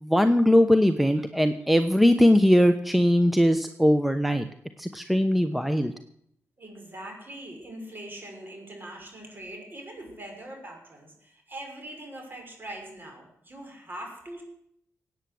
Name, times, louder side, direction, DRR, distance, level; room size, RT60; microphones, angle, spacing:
voice 1, 0.0-4.5 4.8-5.9, equal, ahead, 9 dB, 1.0 m, -20 dB
voice 2, 6.6-14.4, right 1 dB, 40° right, 2 dB, 6.1 m, -42 dB
17.0 x 9.1 x 7.8 m, 0.72 s
cardioid pair, 60°, 5 cm